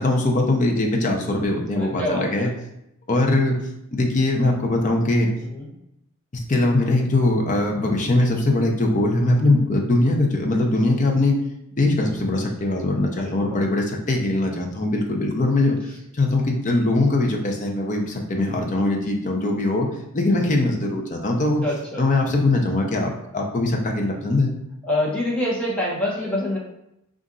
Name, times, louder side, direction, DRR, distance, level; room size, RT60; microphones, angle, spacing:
voice 1, 0.0-2.5 3.1-3.6 3.9-5.3 6.3-11.4 11.8-15.8 16.1-19.9 20.1-21.6 22.0-24.5, left 2 dB, 35° left, 1 dB, 0.6 m, -21 dB
voice 2, 1.8-2.2 5.5-5.7 13.2-13.6 21.6-21.7 24.9-26.6, left 1 dB, 5° left, -5 dB, 0.9 m, -25 dB
4.1 x 2.5 x 3.7 m, 0.82 s
head